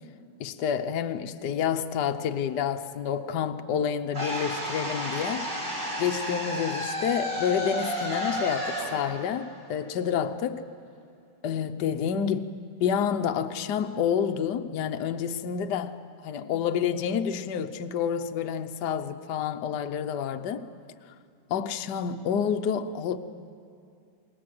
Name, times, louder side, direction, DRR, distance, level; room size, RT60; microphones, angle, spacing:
voice 1, 0.4-5.5 6.0-10.6 11.4-12.4 12.8-16.0 16.2-20.7 21.5-23.2, left 8 dB, 60° left, 7 dB, 1.4 m, -28 dB
sound 1, 4.1-10.2, equal, 40° right, 6.1 m, -32 dB
28.5 x 21.5 x 7.7 m, 2.5 s
omnidirectional pair, 2.3 m